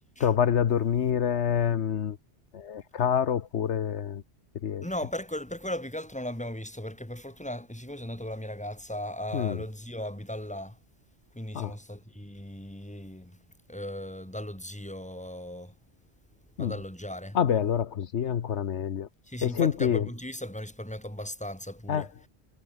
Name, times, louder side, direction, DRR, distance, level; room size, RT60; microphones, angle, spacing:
voice 1, 0.2-2.2 2.5-4.2 4.5-4.8 9.3-9.6 11.5-11.8 16.6-16.7 17.3-19.1 19.4-20.1 21.9-22.1, left 8 dB, 75° left, 1.2 m, -27 dB
voice 2, 4.8-10.8 11.3-13.4 13.7-15.8 16.6-17.4 19.3-22.1, left 1 dB, 5° left, 3.1 m, -37 dB
omnidirectional pair, 1.2 m